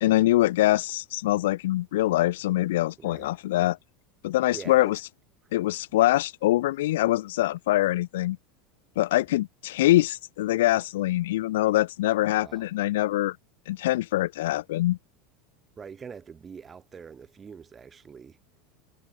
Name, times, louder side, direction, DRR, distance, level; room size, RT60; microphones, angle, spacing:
voice 1, 0.0-3.8 4.2-5.0 5.5-8.4 9.0-13.4 13.7-15.0, left 16 dB, 85° left, 0.8 m, -24 dB
voice 2, 3.0-3.3 4.5-5.0 12.4-12.7 15.8-18.4, right 6 dB, 20° right, 2.9 m, -44 dB
supercardioid pair, 130°, 0 cm